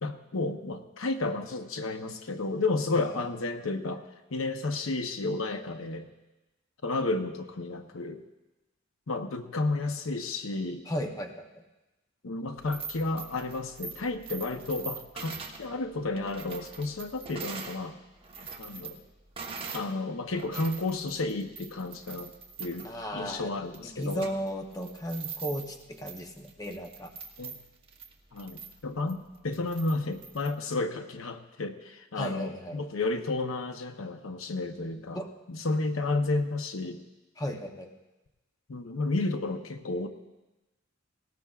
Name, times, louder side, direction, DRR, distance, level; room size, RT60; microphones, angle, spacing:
voice 1, 0.0-6.1 6.8-8.2 9.1-10.9 12.2-18.0 18.6-19.0 19.7-22.3 22.6-24.2 27.4-27.6 28.3-35.2 35.5-37.0 38.7-40.1, left 2 dB, 85° left, 7 dB, 0.8 m, -32 dB
voice 2, 10.9-11.6 22.8-23.5 23.8-27.1 32.2-32.8 35.1-35.3 37.4-37.9, equal, 20° left, 3 dB, 0.8 m, -35 dB
sound 1, 12.6-17.8 18.2-19.9 20.3-30.5, right 5 dB, 25° right, 1.1 m, -43 dB
18.5 x 17.5 x 2.4 m, 1.1 s
head